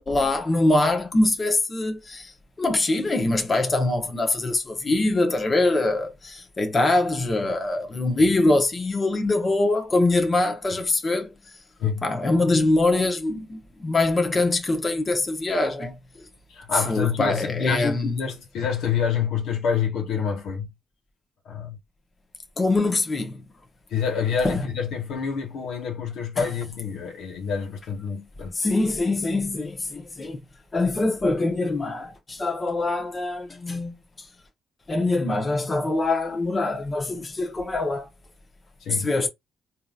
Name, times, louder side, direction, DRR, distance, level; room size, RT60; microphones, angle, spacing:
voice 1, 0.0-2.3 2.6-11.3 12.0-16.0 16.7-18.2 22.6-23.4 24.4-24.7 26.4-26.5 28.5-30.4 30.7-34.3 34.9-38.1 39.0-39.3, left 2 dB, 30° left, 1.0 m, -23 dB
voice 2, 16.5-20.7 21.4-21.8 23.9-28.6 38.8-39.1, left 7 dB, 80° left, 1.3 m, -27 dB
3.7 x 2.8 x 2.4 m
cardioid pair, 90°, 0 cm